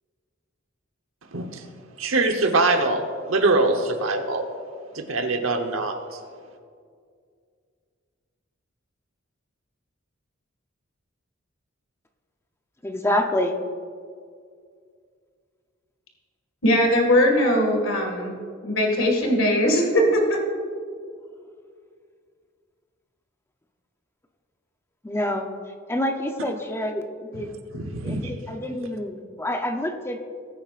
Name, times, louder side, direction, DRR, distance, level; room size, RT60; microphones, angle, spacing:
voice 1, 1.3-1.7 2.0-4.4 4.9-6.0 27.4-27.5 27.7-28.3, right 2 dB, 85° right, 4 dB, 1.0 m, -23 dB
voice 2, 12.8-13.6 25.0-25.5 25.9-27.5 28.0-30.2, left 1 dB, 15° left, 4 dB, 0.7 m, -27 dB
voice 3, 16.6-18.4 18.6-20.4, equal, 85° left, 2 dB, 2.0 m, -20 dB
19.5 x 9.5 x 2.5 m, 2.2 s
head